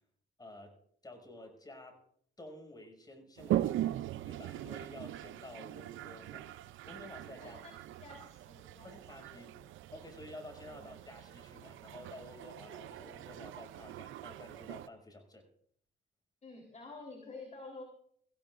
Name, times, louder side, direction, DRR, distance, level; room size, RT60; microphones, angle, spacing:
voice 1, 0.4-0.8 1.0-2.0 2.4-3.9 4.2-6.6 6.9-7.6 8.8-9.5 9.9-15.5, left 1 dB, 20° left, 4 dB, 5.9 m, -51 dB
Toilet flush, 3.4-14.9, right 13 dB, 80° right, 0.6 m, -40 dB
voice 2, 7.4-8.9 9.3-9.5 10.7-11.0 16.4-17.8, left 3 dB, 35° left, 1 dB, 3.6 m, -50 dB
25.0 x 16.0 x 2.5 m, 0.64 s
cardioid pair, 90°, 20 cm